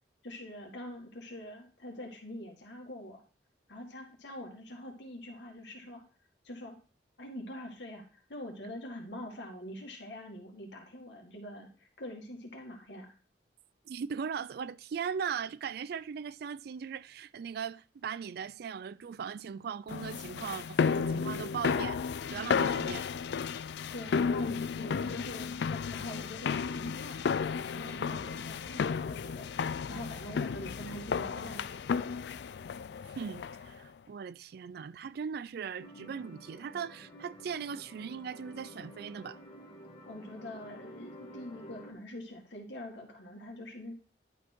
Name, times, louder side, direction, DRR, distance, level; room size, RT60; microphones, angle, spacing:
voice 1, 0.2-3.2 3.7-6.0 6.4-6.8 7.2-13.1 23.9-29.5 29.9-31.8 40.0-43.9, left 1 dB, 85° left, 2.0 m, -44 dB
voice 2, 13.9-22.0 22.3-23.1 33.1-39.4, right 7 dB, 60° right, 0.3 m, -39 dB
sound 1, 19.9-33.8, left 6 dB, 70° left, 0.4 m, -33 dB
sound 2, 35.8-41.9, equal, 40° left, 1.7 m, -50 dB
11.0 x 4.5 x 4.4 m
head